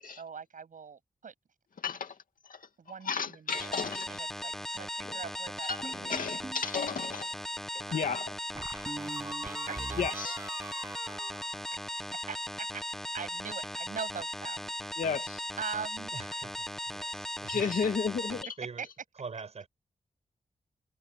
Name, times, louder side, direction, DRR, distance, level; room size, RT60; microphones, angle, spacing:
voice 1, 0.0-1.3 2.8-3.8 4.1-6.3 7.9-8.3 9.4-10.3 11.7-12.8 13.1-14.9 15.6-16.4 17.5-17.8 18.8-18.9, right 6 dB, 75° right, 7.9 m, -43 dB
voice 2, 1.8-2.1 2.5-2.6 3.1-4.1 5.0-5.2 5.6-7.3 7.7-8.3 10.0-10.3 15.0-15.4 17.5-18.4, left 6 dB, 85° left, 2.5 m, -33 dB
sound 1, 3.5-18.4, equal, 5° left, 1.1 m, -38 dB
sound 2, 5.8-6.7 8.5-12.2, right 2 dB, 20° right, 7.1 m, -42 dB
voice 3, 16.1-17.7 18.6-18.8 19.2-19.7, right 5 dB, 50° right, 5.8 m, -44 dB
wide cardioid pair, 180°, 14 cm